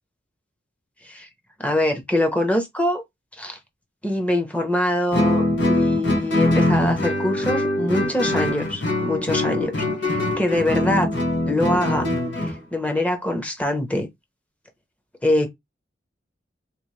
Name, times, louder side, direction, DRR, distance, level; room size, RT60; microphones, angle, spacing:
voice 1, 1.6-3.0 3.4-3.6 4.0-11.1 11.5-12.1 12.4-14.1 15.2-15.5, left 1 dB, 10° left, 0.8 m, -24 dB
Guitar, 5.1-12.6, left 1 dB, 85° left, 1.3 m, -23 dB
3.0 x 2.9 x 3.1 m
head